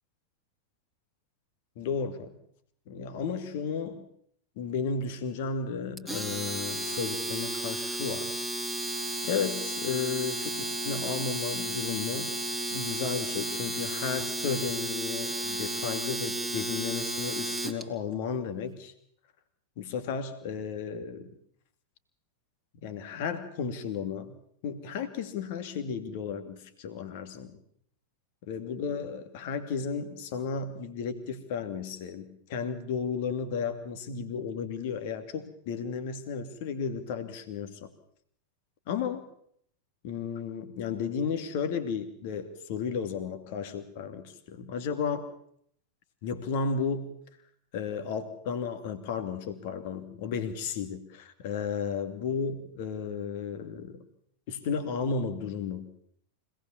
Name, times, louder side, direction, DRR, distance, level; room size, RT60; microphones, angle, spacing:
voice 1, 1.8-2.4 2.9-4.1 4.6-8.4 9.2-12.3 12.7-18.9 19.8-21.3 22.8-24.4 24.6-27.6 28.5-37.9 38.9-39.3 40.0-45.3 46.2-47.1 47.7-54.0 54.5-55.9, left 6 dB, 50° left, 9 dB, 2.5 m, -33 dB
Domestic sounds home sounds, 6.0-17.8, right 1 dB, 5° left, 3.2 m, -33 dB
25.5 x 19.0 x 7.3 m, 0.67 s
figure-of-eight pair, 90°, 0 cm